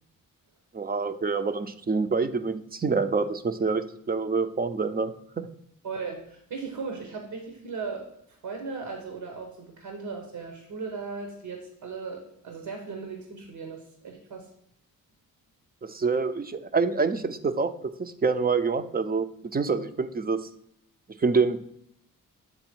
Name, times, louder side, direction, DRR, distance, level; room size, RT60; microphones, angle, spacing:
voice 1, 0.7-5.5 15.8-17.7 18.0-20.5 21.2-21.6, right 4 dB, 25° right, 10 dB, 0.5 m, -26 dB
voice 2, 5.8-8.1 8.4-14.5, right 4 dB, 85° right, 3 dB, 1.2 m, -37 dB
7.8 x 3.5 x 4.5 m, 0.74 s
cardioid pair, 65°, 36 cm